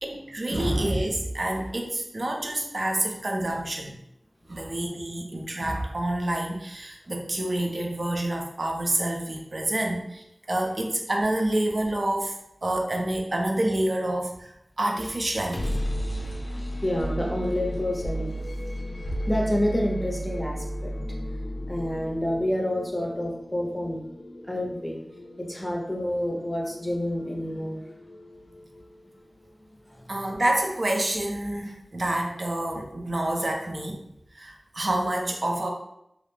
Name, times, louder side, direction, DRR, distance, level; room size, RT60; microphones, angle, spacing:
voice 1, 0.0-4.0 4.5-15.9 30.1-34.0 34.3-35.7, right 1 dB, 55° right, 2 dB, 0.5 m, -28 dB
sound 1, 15.5-29.1, equal, 80° left, 0.5 m, -34 dB
voice 2, 16.8-18.3 19.3-20.9 21.7-24.1 24.4-25.0 25.4-27.8 29.8-30.1, left 1 dB, 20° left, -1 dB, 0.5 m, -28 dB
2.4 x 2.1 x 3.1 m, 0.80 s
wide cardioid pair, 60°, 0 cm